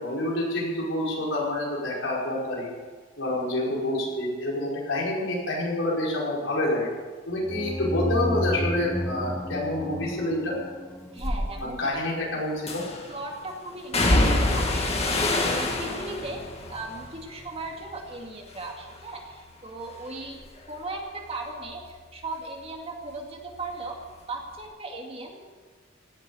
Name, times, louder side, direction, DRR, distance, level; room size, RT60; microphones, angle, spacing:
voice 1, 0.0-2.7 3.2-6.9 7.3-10.6 11.6-12.8, left 1 dB, 80° left, -4 dB, 5.3 m, -27 dB
sound 1, 7.4-12.0, equal, 10° left, 0.5 m, -32 dB
voice 2, 11.1-12.0 13.1-16.4 16.7-20.4 20.7-24.0 24.3-25.5, right 2 dB, 30° right, 1 dB, 2.2 m, -37 dB
sound 2, 11.2-11.4 12.7-13.1 13.9-18.2 18.5-19.1 19.5-22.8 23.0-24.2 24.5-24.6, left 2 dB, 35° left, 1.9 m, -28 dB
16.5 x 8.1 x 8.9 m, 1.4 s
head